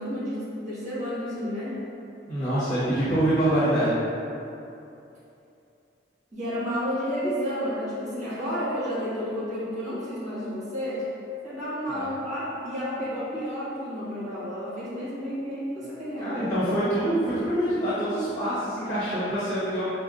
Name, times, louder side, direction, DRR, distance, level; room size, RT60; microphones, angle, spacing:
voice 1, 0.0-1.8 6.3-11.0 11.4-16.4, equal, 40° right, -10 dB, 1.4 m, -31 dB
voice 2, 2.3-4.0 11.9-12.1 16.2-19.8, right 1 dB, 30° left, -13 dB, 1.2 m, -25 dB
5.1 x 2.3 x 2.5 m, 2.7 s
head